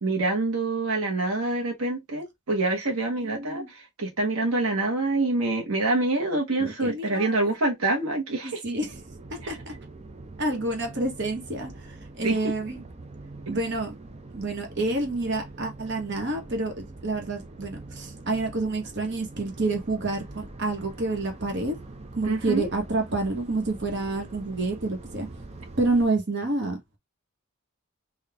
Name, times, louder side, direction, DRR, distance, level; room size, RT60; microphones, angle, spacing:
voice 1, 0.0-8.6 9.4-9.5 12.2-12.4 13.5-13.6 22.3-22.7, right 2 dB, 80° right, 1.1 m, -26 dB
voice 2, 3.2-3.7 6.6-7.4 8.4-8.9 9.3-9.7 10.4-12.8 13.5-14.0 14.3-21.7 22.1-25.3 25.8-26.8, right 2 dB, 55° right, 1.2 m, -28 dB
sound 1, 8.9-26.1, right 2 dB, 30° right, 0.6 m, -44 dB
3.9 x 2.4 x 3.3 m
head